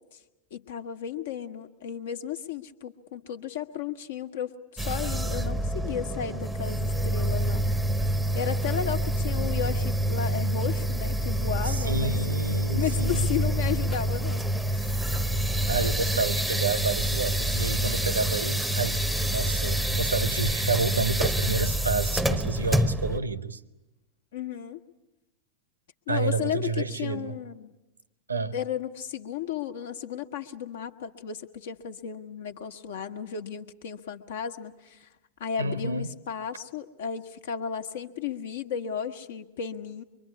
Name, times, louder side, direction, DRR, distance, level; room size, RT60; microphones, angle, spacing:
voice 1, 0.5-7.6 8.0-8.1 8.3-12.2 12.7-14.4 14.7-15.0 24.3-24.8 26.1-27.7 28.5-35.1 35.4-40.0, left 8 dB, 60° left, 1.3 m, -34 dB
sound 1, 4.8-23.2, right 1 dB, 5° right, 0.8 m, -27 dB
voice 2, 11.6-13.3 15.7-23.6 26.1-27.4 28.3-28.6 35.6-36.2, right 3 dB, 75° right, 0.9 m, -29 dB
24.5 x 23.5 x 8.3 m
figure-of-eight pair, 90°, 0 cm